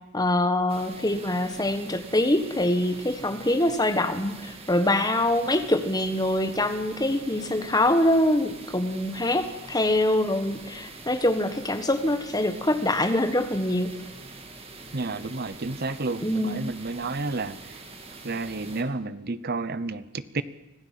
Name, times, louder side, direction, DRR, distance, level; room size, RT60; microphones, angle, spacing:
voice 1, 0.1-14.0 16.2-16.6, left 1 dB, 20° left, 8 dB, 1.4 m, -24 dB
sound 1, 0.7-18.8, right 3 dB, 25° right, 2.4 m, -44 dB
voice 2, 14.9-17.8 18.2-20.4, right 3 dB, 45° right, 15 dB, 0.9 m, -31 dB
25.0 x 16.0 x 7.6 m, 1.0 s
head